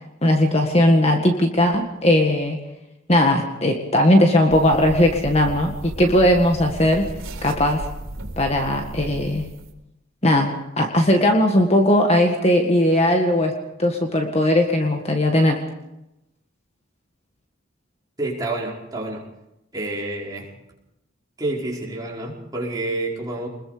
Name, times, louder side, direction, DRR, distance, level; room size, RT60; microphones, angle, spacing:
voice 1, 0.2-2.6 3.1-7.1 7.4-7.9 8.4-9.5 10.2-13.5 13.8-15.6, left 1 dB, 30° left, 3 dB, 1.8 m, -18 dB
sound 1, 4.5-9.7, right 1 dB, 85° right, 3.8 m, -35 dB
voice 2, 18.2-19.2 19.7-20.5 21.4-23.5, right 2 dB, 20° right, -4 dB, 5.1 m, -28 dB
26.5 x 21.5 x 5.1 m, 0.90 s
head